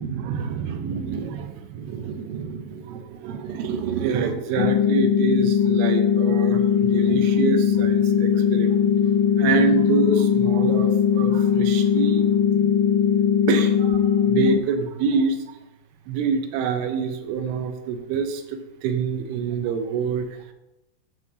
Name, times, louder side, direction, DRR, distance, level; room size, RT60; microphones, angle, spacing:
voice 1, 0.0-9.1 9.4-12.2 12.5-12.7 13.5-15.4 16.1-20.4, right 6 dB, 80° right, 7 dB, 2.4 m, -26 dB
sound 1, 4.6-14.6, left 8 dB, 90° left, 3.0 m, -20 dB
10.5 x 5.6 x 2.8 m, 0.96 s
omnidirectional pair, 5.0 m